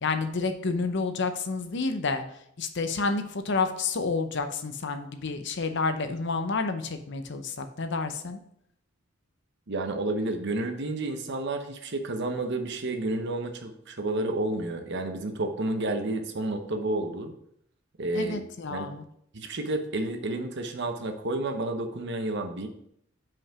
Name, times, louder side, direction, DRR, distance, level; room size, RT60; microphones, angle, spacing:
voice 1, 0.0-2.2 2.6-8.4 18.1-19.0, left 4 dB, 60° left, 8 dB, 0.7 m, -29 dB
voice 2, 9.7-17.3 18.0-18.4 18.7-18.9 19.3-22.7, right 2 dB, 60° right, 6 dB, 0.9 m, -30 dB
5.7 x 5.2 x 4.8 m, 0.72 s
head